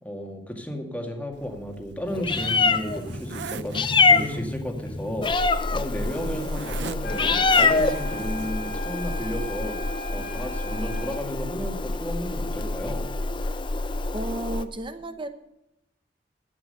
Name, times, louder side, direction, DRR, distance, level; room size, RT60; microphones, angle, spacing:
voice 1, 0.0-3.8 4.1-5.3 5.7-9.8 10.1-13.0, equal, 10° left, 3 dB, 2.0 m, -33 dB
Zipper (clothing), 1.3-8.7, right 5 dB, 80° right, 0.5 m, -41 dB
Meow, 2.1-14.6, left 4 dB, 30° left, 0.6 m, -25 dB
sound 1, 7.0-11.3, left 1 dB, 70° left, 1.8 m, -37 dB
voice 2, 14.1-15.3, right 1 dB, 30° right, 9 dB, 0.9 m, -33 dB
12.0 x 8.9 x 6.8 m, 0.86 s
head